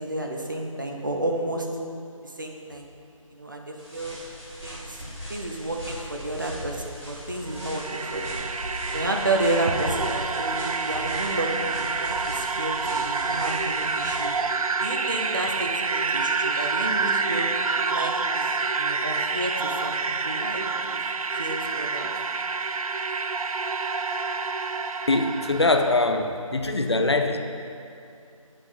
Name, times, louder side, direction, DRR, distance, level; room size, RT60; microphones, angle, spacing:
voice 1, 0.0-1.7 2.2-2.9 3.3-4.2 4.6-5.0 5.3-8.4 8.9-14.3 14.8-17.5 17.9-18.5 18.7-21.0 21.3-22.1, right 1 dB, 35° right, 2 dB, 0.6 m, -31 dB
sound 1, 3.8-14.4, equal, 5° right, 0.8 m, -39 dB
sound 2, 7.4-26.1, right 4 dB, 85° right, 0.4 m, -28 dB
voice 2, 25.1-27.4, left 2 dB, 50° left, 6 dB, 0.5 m, -22 dB
7.9 x 5.1 x 5.4 m, 2.5 s
figure-of-eight pair, 175°, 18 cm